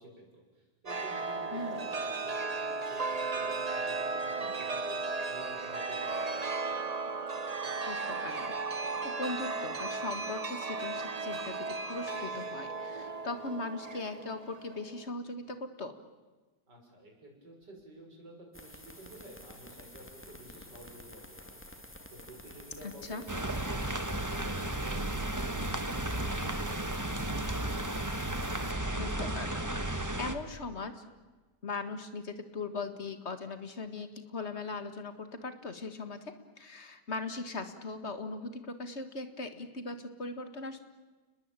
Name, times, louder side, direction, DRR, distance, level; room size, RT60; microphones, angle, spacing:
voice 1, 0.0-6.5 16.7-21.4 22.1-27.5, right 1 dB, 85° right, 1 dB, 6.8 m, -51 dB
Chime, 0.9-15.1, right 3 dB, 25° right, 1.0 m, -35 dB
voice 2, 1.5-1.9 7.9-15.9 22.8-23.2 29.0-31.0 31.6-40.8, left 3 dB, 40° left, 9 dB, 2.0 m, -39 dB
sound 1, 18.5-28.7, left 1 dB, 5° left, 2.0 m, -50 dB
sound 2, 23.3-30.4, right 1 dB, 10° right, 1.5 m, -34 dB
29.5 x 20.5 x 9.0 m, 1.3 s
omnidirectional pair, 1.8 m